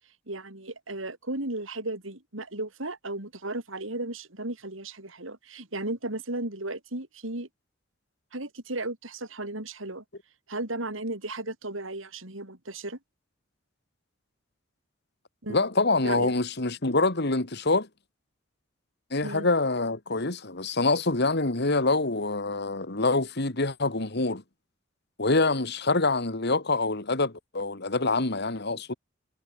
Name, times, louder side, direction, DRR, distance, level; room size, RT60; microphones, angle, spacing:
voice 1, 0.3-7.5 8.3-10.0 10.5-13.0 15.4-15.7 16.0-16.3 19.2-19.5, right 2 dB, 85° right, 5.2 m, -35 dB
voice 2, 15.5-17.9 19.1-24.4 25.2-28.9, left 3 dB, 55° left, 2.2 m, -25 dB
head